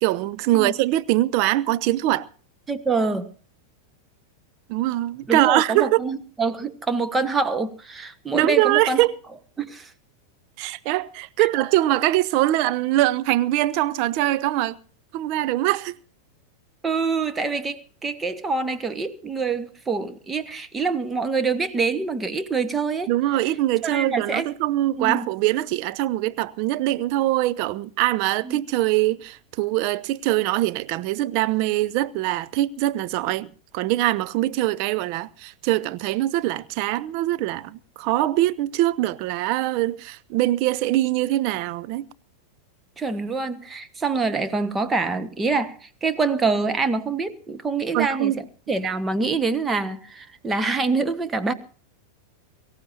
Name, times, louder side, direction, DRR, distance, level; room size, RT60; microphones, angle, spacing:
voice 1, 0.0-2.3 4.7-6.0 8.3-9.1 10.6-14.8 15.1-16.0 23.1-42.1 47.9-48.4, right 15 dB, 45° right, 0.8 m, -23 dB
voice 2, 2.7-3.3 5.3-9.0 9.6-9.9 11.4-11.5 16.8-23.1 23.8-24.5 25.0-25.3 28.4-28.6 43.0-51.5, right 4 dB, 15° right, 1.4 m, -25 dB
23.5 x 14.5 x 2.8 m
figure-of-eight pair, 90°, 0 cm